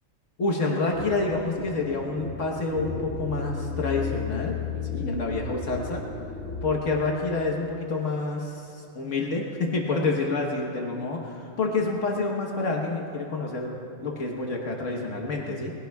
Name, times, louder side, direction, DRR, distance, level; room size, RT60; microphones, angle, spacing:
voice 1, 0.4-4.5 4.9-6.0 6.6-13.8 14.0-15.7, left 3 dB, 70° left, -1 dB, 1.5 m, -28 dB
sound 1, 0.9-6.8, left 4 dB, 85° left, 1.9 m, -33 dB
21.0 x 16.5 x 2.3 m, 2.5 s
omnidirectional pair, 1.3 m